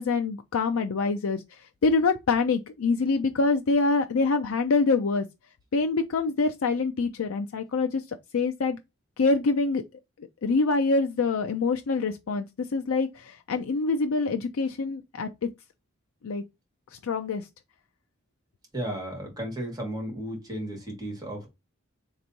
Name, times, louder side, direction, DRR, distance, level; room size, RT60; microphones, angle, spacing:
voice 1, 0.0-1.4 1.8-5.3 5.7-8.8 9.2-9.8 10.4-12.5 12.7-15.5 16.2-16.4 17.0-17.5, left 3 dB, 90° left, 0.5 m, -25 dB
voice 2, 18.7-21.5, equal, 20° right, 2.1 m, -34 dB
3.4 x 3.0 x 3.9 m
head